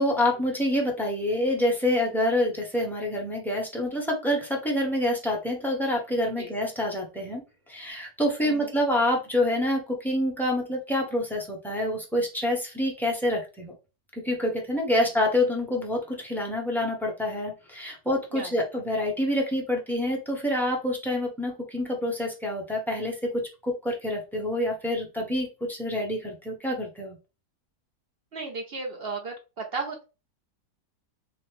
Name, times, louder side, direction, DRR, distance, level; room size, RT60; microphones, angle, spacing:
voice 1, 0.0-7.4 7.7-13.7 14.2-27.2, left 1 dB, ahead, -1 dB, 0.9 m, -27 dB
voice 2, 8.4-8.7 15.0-15.1 18.3-18.6 28.3-30.0, right 3 dB, 55° right, 3 dB, 0.7 m, -35 dB
3.8 x 2.9 x 3.2 m, 0.30 s
omnidirectional pair, 1.8 m